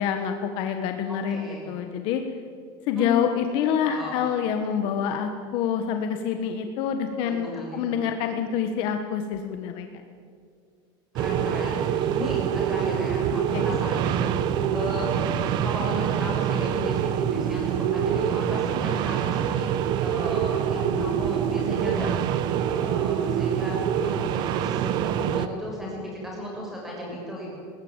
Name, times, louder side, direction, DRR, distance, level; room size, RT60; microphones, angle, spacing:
voice 1, 0.0-2.2 2.9-9.9 13.5-13.8, left 8 dB, 50° left, 6 dB, 1.4 m, -27 dB
voice 2, 1.1-1.6 2.9-3.2 3.8-4.2 7.2-7.9 11.1-19.7 20.0-27.5, left 1 dB, 5° right, -3 dB, 6.8 m, -35 dB
sound 1, 11.2-25.5, right 9 dB, 40° right, 1.0 m, -25 dB
20.0 x 20.0 x 8.9 m, 2.3 s
cardioid pair, 175°, 12 cm